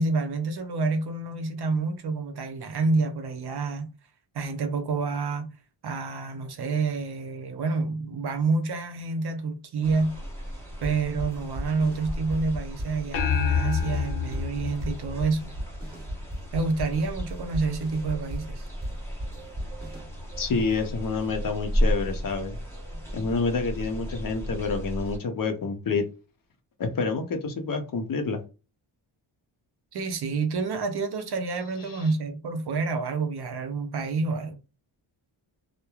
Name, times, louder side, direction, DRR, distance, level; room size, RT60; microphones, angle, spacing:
voice 1, 0.0-3.9 4.3-5.5 5.8-10.2 10.8-15.5 16.5-18.7 29.9-34.6, right 4 dB, 60° right, 0.6 m, -28 dB
sound 1, 9.8-25.2, equal, 5° left, 1.0 m, -34 dB
sound 2, 10.8-20.0, equal, 20° right, 1.2 m, -36 dB
sound 3, 13.1-15.8, left 7 dB, 90° left, 0.7 m, -28 dB
voice 2, 20.4-22.6 23.1-26.0 26.8-28.4, left 4 dB, 45° left, 0.6 m, -28 dB
3.0 x 2.1 x 2.3 m
wide cardioid pair, 120°, 46 cm